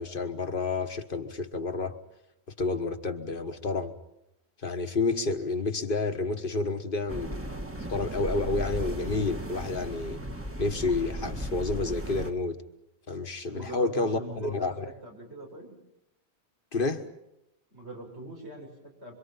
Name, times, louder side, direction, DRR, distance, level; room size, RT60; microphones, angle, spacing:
voice 1, 0.0-2.0 2.6-3.9 4.6-7.4 7.9-10.2 10.6-12.6 13.1-14.9 16.7-17.1, left 3 dB, 55° left, 1.5 m, -30 dB
sound 1, 7.1-12.3, right 1 dB, 10° right, 1.4 m, -36 dB
voice 2, 13.5-15.7 17.7-19.1, right 1 dB, 90° right, 6.8 m, -42 dB
26.5 x 25.0 x 5.7 m
omnidirectional pair, 1.1 m